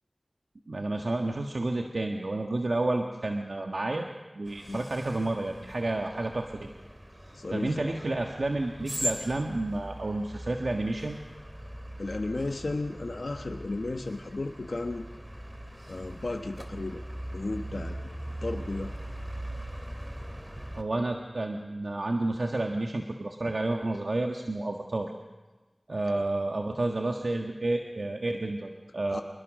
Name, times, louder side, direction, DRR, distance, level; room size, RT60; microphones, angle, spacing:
voice 1, 0.7-4.0 4.3-6.7 7.5-11.2 20.7-25.1 25.9-29.2, right 2 dB, 75° right, 2 dB, 1.6 m, -30 dB
sound 1, 4.5-20.8, right 1 dB, 15° right, 2.4 m, -40 dB
voice 2, 7.3-8.0 12.0-15.0 15.9-17.0 17.3-18.0 18.4-18.9 29.1-29.2, left 2 dB, 75° left, 4 dB, 1.1 m, -34 dB
26.0 x 20.5 x 6.4 m, 1.2 s
wide cardioid pair, 50°, 0 cm